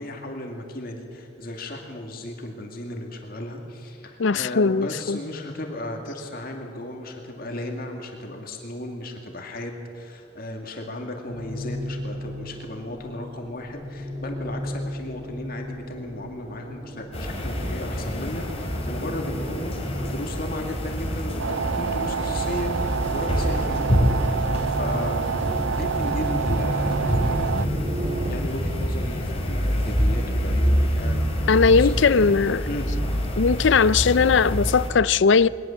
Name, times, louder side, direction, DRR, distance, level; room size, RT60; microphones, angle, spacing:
voice 1, 0.0-25.4 25.8-32.3 32.7-32.9, left 1 dB, 50° left, 2.2 m, -35 dB
voice 2, 4.2-5.2 31.5-32.6 33.4-35.5, left 5 dB, 70° left, 0.5 m, -19 dB
sound 1, 11.3-28.3, right 1 dB, 40° right, 3.6 m, -35 dB
sound 2, 17.1-34.9, equal, 30° left, 3.5 m, -26 dB
sound 3, 21.4-27.7, right 7 dB, 70° right, 0.4 m, -28 dB
21.5 x 19.0 x 7.2 m
head